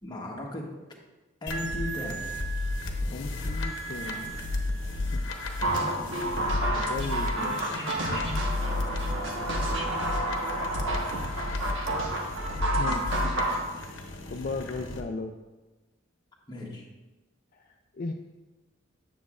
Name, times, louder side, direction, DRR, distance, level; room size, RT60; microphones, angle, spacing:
voice 1, 0.0-0.7 1.4-2.3 7.3-7.8 16.5-16.8, left 1 dB, 20° left, -1 dB, 1.1 m, -37 dB
sound 1, 1.5-15.0, left 2 dB, 65° left, 0.9 m, -33 dB
voice 2, 3.1-4.4 5.1-5.2 6.7-8.4 12.8-13.1 14.3-15.3 17.5-18.1, left 3 dB, 45° left, 2 dB, 0.4 m, -36 dB
sound 2, 5.6-13.6, right 1 dB, 70° right, 1.2 m, -30 dB
9.5 x 7.0 x 2.4 m, 1.1 s
head